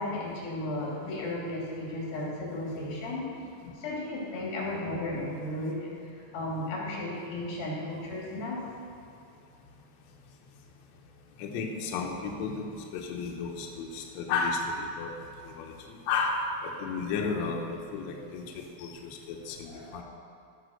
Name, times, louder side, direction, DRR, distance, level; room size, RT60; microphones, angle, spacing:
voice 1, 0.0-3.3 3.7-5.9 6.3-8.6 19.7-20.0, left 1 dB, 90° left, -4 dB, 4.7 m, -34 dB
voice 2, 3.4-3.7 11.4-15.1 15.4-20.0, left 4 dB, 65° left, 0 dB, 2.0 m, -33 dB
16.0 x 5.6 x 6.6 m, 2.6 s
omnidirectional pair, 4.1 m